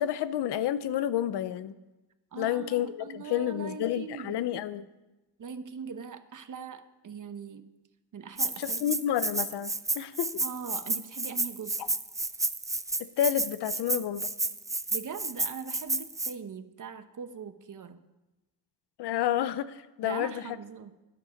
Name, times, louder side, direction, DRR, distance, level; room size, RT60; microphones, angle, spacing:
voice 1, 0.0-1.7 2.4-4.8 8.6-10.4 13.0-14.3 19.0-20.4, left 11 dB, 85° left, 14 dB, 0.7 m, -30 dB
voice 2, 2.3-4.4 5.4-7.7 8.1-9.0 10.4-11.8 14.9-18.0 20.0-21.0, right 6 dB, 50° right, 10 dB, 1.1 m, -41 dB
Rattle (instrument), 8.4-16.3, right 2 dB, 10° right, 0.5 m, -31 dB
12.0 x 9.9 x 5.2 m, 1.0 s
cardioid pair, 70°, 39 cm